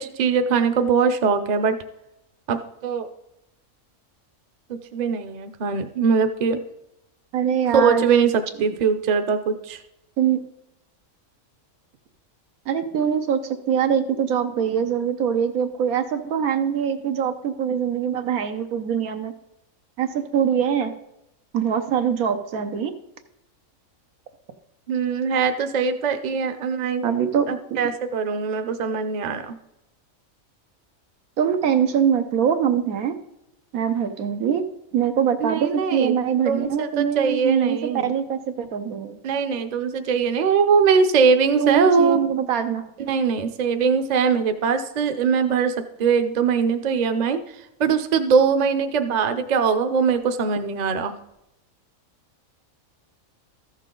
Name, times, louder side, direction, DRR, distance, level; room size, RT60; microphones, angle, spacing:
voice 1, 0.0-1.8 2.5-3.1 4.7-6.6 7.7-9.8 24.9-27.0 27.5-29.6 35.4-36.1 36.5-38.1 39.2-42.2 43.0-45.7 46.0-47.4 47.8-51.1, right 5 dB, 45° right, 8 dB, 0.6 m, -21 dB
voice 2, 7.3-8.1 10.2-10.4 12.7-19.3 20.0-20.9 21.5-22.9 27.0-27.9 31.4-33.2 33.7-34.6 34.9-39.2 41.6-42.8, right 8 dB, 90° right, 7 dB, 1.3 m, -23 dB
14.0 x 6.5 x 3.8 m, 0.87 s
omnidirectional pair, 1.4 m